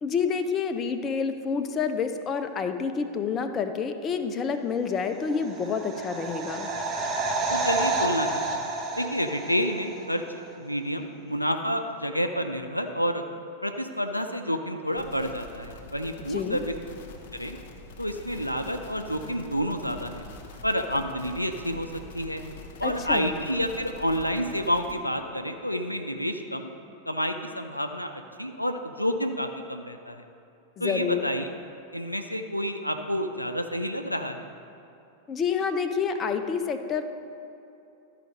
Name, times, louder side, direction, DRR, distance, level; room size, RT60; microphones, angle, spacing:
voice 1, 0.0-6.7 16.3-16.6 22.8-23.3 30.8-31.2 35.3-37.0, left 6 dB, 25° left, 7 dB, 0.5 m, -28 dB
sound 1, 5.2-10.0 10.3-10.4, right 3 dB, 25° right, 1.2 m, -30 dB
voice 2, 7.5-13.2 13.6-16.7 17.3-17.6 18.0-20.2 20.6-22.4 22.8-26.7 27.1-30.3 30.8-31.5 31.9-34.5, equal, 90° left, 5 dB, 0.5 m, -29 dB
sound 2, 14.9-24.9, left 2 dB, 55° left, 0.9 m, -45 dB
12.0 x 4.9 x 5.2 m, 2.7 s
figure-of-eight pair, 90°, 0 cm